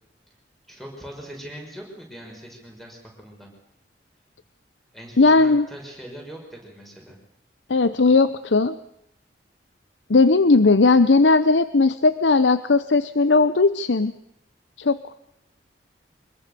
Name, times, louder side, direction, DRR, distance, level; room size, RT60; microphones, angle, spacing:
voice 1, 0.7-3.5 4.9-7.2, equal, ahead, 1 dB, 6.1 m, -41 dB
voice 2, 5.2-5.7 7.7-8.8 10.1-14.1 14.8-15.0, left 3 dB, 85° left, 13 dB, 0.8 m, -17 dB
25.0 x 21.0 x 6.9 m, 0.78 s
head